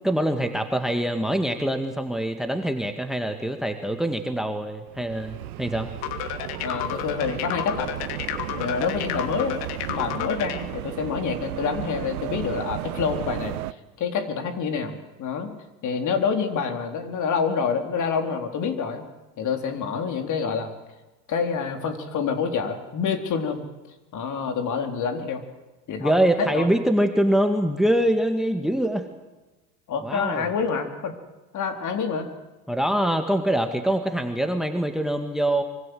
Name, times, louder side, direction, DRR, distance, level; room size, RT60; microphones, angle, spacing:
voice 1, 0.0-5.9 26.0-29.1 30.0-30.5 32.7-35.6, right 1 dB, ahead, 7 dB, 2.1 m, -24 dB
sound 1, 4.9-13.7, right 15 dB, 70° right, 1.0 m, -34 dB
sound 2, 6.0-10.6, left 11 dB, 55° left, 2.7 m, -31 dB
voice 2, 6.6-7.9 8.6-9.6 9.9-13.6 14.0-15.6 15.8-19.0 19.4-20.7 21.3-23.6 24.1-25.4 25.9-26.7 29.9-31.1 31.5-32.3, left 6 dB, 40° left, 5 dB, 4.1 m, -27 dB
25.0 x 24.5 x 8.0 m, 1.1 s
hypercardioid pair, 85°, 45 cm